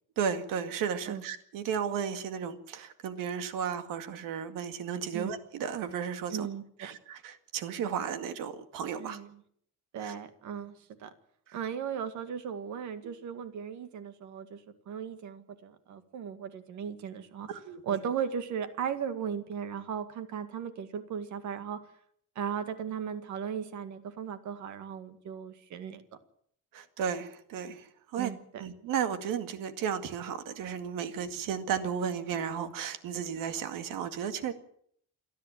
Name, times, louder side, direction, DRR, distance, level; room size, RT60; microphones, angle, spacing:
voice 1, 0.2-6.5 6.8-9.2 10.0-10.1 17.5-18.0 26.7-28.3 28.6-34.5, right 7 dB, 75° right, 9 dB, 2.1 m, -34 dB
voice 2, 6.3-6.9 9.0-9.4 9.9-11.1 11.5-17.5 17.8-21.8 22.4-26.0 28.2-28.6, right 7 dB, 60° right, 10 dB, 2.0 m, -37 dB
28.5 x 10.5 x 9.0 m, 0.66 s
cardioid pair, 175°, 33 cm